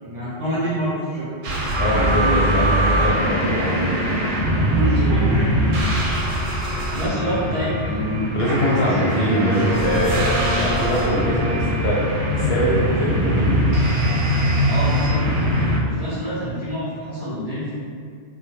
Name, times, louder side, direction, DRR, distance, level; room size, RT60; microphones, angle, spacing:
voice 1, 0.0-1.3 1.9-2.4 4.7-5.3 6.9-9.1 14.6-15.2 15.8-17.7, equal, 40° right, -12 dB, 0.6 m, -26 dB
sound 1, 1.4-15.8, equal, 85° right, 0.9 m, -21 dB
voice 2, 1.7-4.2 8.3-12.0 12.3-13.6, equal, 65° left, -5 dB, 0.7 m, -23 dB
Boat Water vehicle, 9.3-12.0, left 1 dB, 5° right, 0.8 m, -27 dB
2.2 x 2.1 x 3.0 m, 2.2 s
omnidirectional pair, 1.2 m